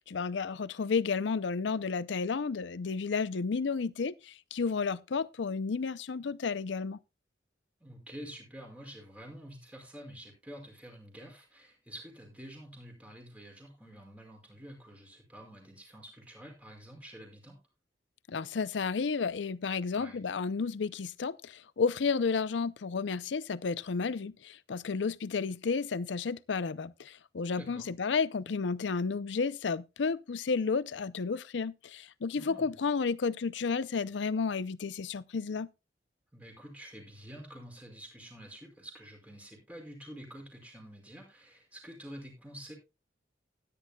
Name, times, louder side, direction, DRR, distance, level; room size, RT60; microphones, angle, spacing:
voice 1, 0.0-7.0 18.3-35.7, left 5 dB, 80° left, 0.5 m, -32 dB
voice 2, 7.8-17.6 19.9-20.2 27.6-27.9 32.3-32.7 36.3-42.7, equal, 10° right, 5.4 m, -48 dB
16.5 x 10.5 x 2.3 m
head